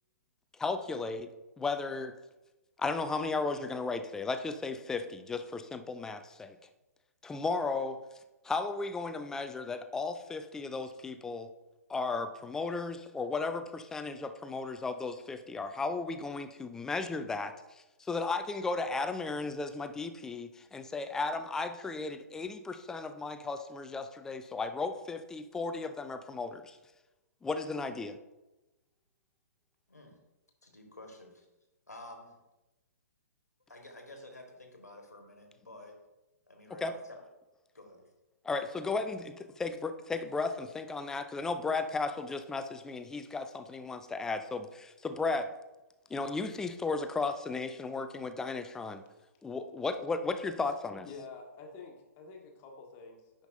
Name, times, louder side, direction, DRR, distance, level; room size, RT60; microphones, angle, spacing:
voice 1, 0.6-1.3 1.6-2.1 2.8-6.6 7.2-8.0 8.4-11.5 11.9-17.5 18.0-26.8 27.4-28.2 36.8-36.9 38.4-45.5 46.1-49.0 49.4-51.1, left 3 dB, 5° left, 9 dB, 0.4 m, -35 dB
voice 2, 29.9-30.2 30.6-31.5 31.9-32.4 33.7-36.0 36.5-37.2 37.7-38.1, left 1 dB, 80° left, 2 dB, 1.6 m, -50 dB
voice 3, 51.0-53.5, left 4 dB, 25° left, 1 dB, 1.3 m, -49 dB
10.5 x 5.2 x 2.6 m, 1.0 s
figure-of-eight pair, 120°, 9 cm